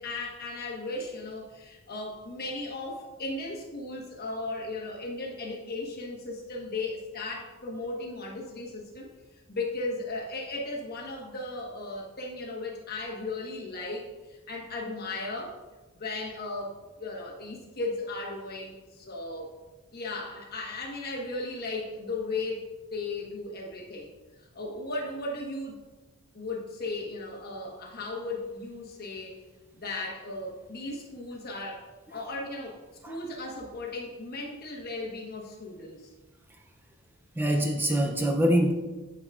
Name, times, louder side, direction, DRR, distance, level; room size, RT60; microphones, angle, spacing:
voice 1, 0.0-9.1 9.5-15.6 15.9-19.5 19.9-22.6 22.9-24.1 24.5-25.8 26.3-29.4 29.7-32.8 33.1-36.1, left 2 dB, 50° left, -1 dB, 1.2 m, -36 dB
voice 2, 37.4-38.7, equal, 10° right, 2 dB, 0.4 m, -24 dB
8.2 x 5.8 x 2.4 m, 1.2 s
head